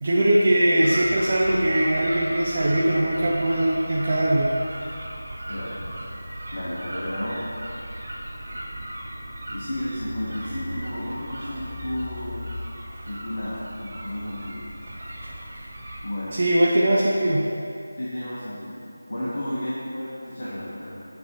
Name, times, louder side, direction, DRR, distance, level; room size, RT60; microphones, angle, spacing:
voice 1, 0.0-4.5 16.3-17.4, right 1 dB, 45° right, -5 dB, 0.6 m, -21 dB
sound 1, 0.8-16.0, right 1 dB, 60° right, 1.2 m, -36 dB
voice 2, 5.5-5.9 6.5-7.4 9.5-12.5 13.1-14.6 16.0-16.4 18.0-18.8 19.1-21.0, left 1 dB, 65° left, -9 dB, 1.2 m, -32 dB
7.4 x 2.9 x 5.4 m, 2.5 s
figure-of-eight pair, 165°, 0 cm